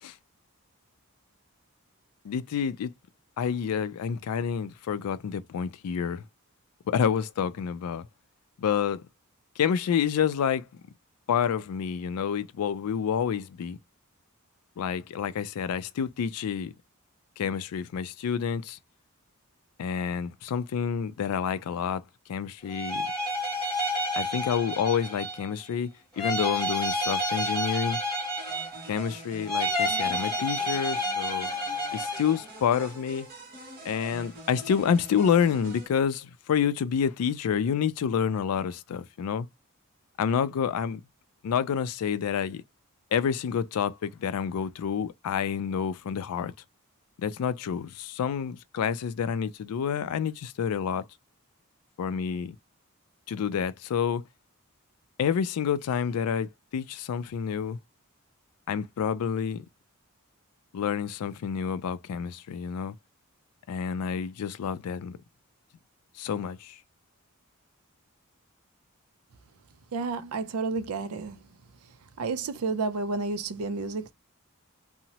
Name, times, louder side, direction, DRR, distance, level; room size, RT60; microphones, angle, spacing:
voice 1, 2.2-2.9 3.4-6.2 6.9-8.1 8.6-9.0 9.6-10.7 11.3-13.8 14.8-16.7 17.4-18.8 19.8-22.0 22.3-23.1 24.2-28.0 28.8-31.5 31.9-33.3 33.8-39.5 40.2-41.0 41.4-42.6 43.1-46.5 47.2-51.0 52.0-52.6 53.3-54.2 55.2-57.8 58.7-59.6 60.7-62.9 63.7-65.2 66.2-66.8, left 7 dB, 85° left, 0.3 m, -28 dB
sound 1, 22.7-25.5 26.2-29.0 29.5-32.4, equal, ahead, 1.5 m, -30 dB
sound 2, 28.4-35.9, right 1 dB, 40° right, 1.0 m, -45 dB
voice 2, 69.9-71.4 72.2-74.1, right 3 dB, 80° right, 0.4 m, -31 dB
2.8 x 2.0 x 2.8 m
head